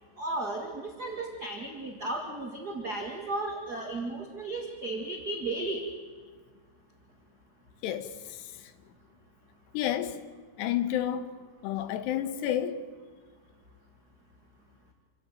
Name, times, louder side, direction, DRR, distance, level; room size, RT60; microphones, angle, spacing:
voice 1, 0.2-5.8, right 2 dB, 35° right, 1.9 m, -34 dB
voice 2, 7.8-8.7 9.7-10.3 10.6-11.3 11.6-12.9, left 10 dB, 85° left, 3.4 m, -31 dB
28.0 x 16.0 x 9.2 m
omnidirectional pair, 4.7 m